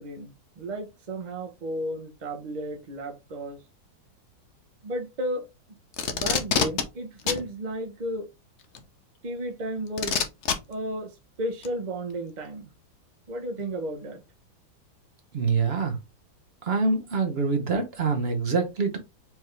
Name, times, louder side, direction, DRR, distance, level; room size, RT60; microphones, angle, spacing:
voice 1, 0.0-3.6 4.8-5.5 6.1-8.2 9.2-10.3 10.7-11.1 11.4-12.7 13.3-14.2, right 1 dB, 75° right, 0.4 m, -33 dB
Packing tape duct tape, 5.9-6.8 7.3-7.4 8.7-8.8 10.0-10.5 11.6-11.7, left 6 dB, 65° left, 0.7 m, -25 dB
voice 2, 15.3-16.0 16.7-19.0, right 4 dB, 50° right, 0.8 m, -25 dB
4.6 x 3.5 x 3.2 m
omnidirectional pair, 2.1 m